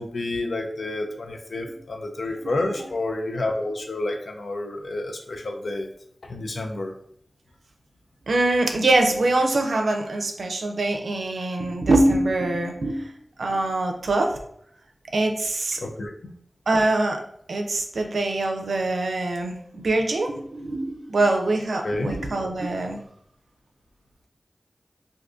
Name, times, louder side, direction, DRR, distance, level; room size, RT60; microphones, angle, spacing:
voice 1, 0.0-5.9 6.3-6.9 15.8-16.3 21.8-22.2, left 2 dB, 80° left, 4 dB, 0.4 m, -29 dB
voice 2, 2.4-2.9 8.3-13.1 13.4-14.4 15.1-15.8 16.7-17.2 17.5-23.0, right 2 dB, 85° right, 4 dB, 0.4 m, -23 dB
2.6 x 2.5 x 3.5 m, 0.67 s
cardioid pair, 45°, 0 cm